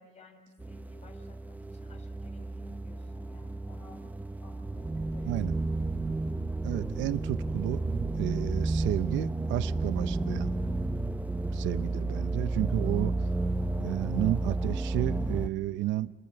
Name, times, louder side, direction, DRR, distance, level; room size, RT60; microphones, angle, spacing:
voice 1, 0.0-5.7, left 3 dB, 30° left, 4 dB, 5.7 m, -56 dB
sound 1, 0.6-15.5, right 2 dB, 5° right, 0.7 m, -32 dB
sound 2, 6.3-11.7 12.2-13.3 13.8-14.0, right 6 dB, 30° right, 2.3 m, -48 dB
voice 2, 6.6-7.8 8.2-10.5 11.5-13.1 13.8-16.1, right 15 dB, 60° right, 13 dB, 0.8 m, -32 dB
30.0 x 21.0 x 7.7 m, 1.4 s
cardioid pair, 110°, 21 cm